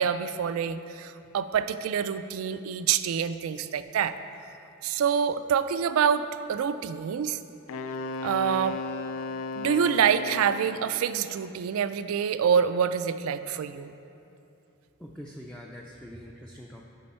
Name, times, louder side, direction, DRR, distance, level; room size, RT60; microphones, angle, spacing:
voice 1, 0.0-4.1 4.8-7.4 8.2-8.8 9.6-13.9, right 7 dB, 75° right, 13 dB, 0.3 m, -26 dB
Wind instrument woodwind instrument, 7.7-10.8, left 3 dB, 80° left, 0.4 m, -35 dB
voice 2, 15.0-16.9, equal, 5° left, -2 dB, 0.4 m, -44 dB
9.5 x 5.3 x 4.3 m, 2.8 s
head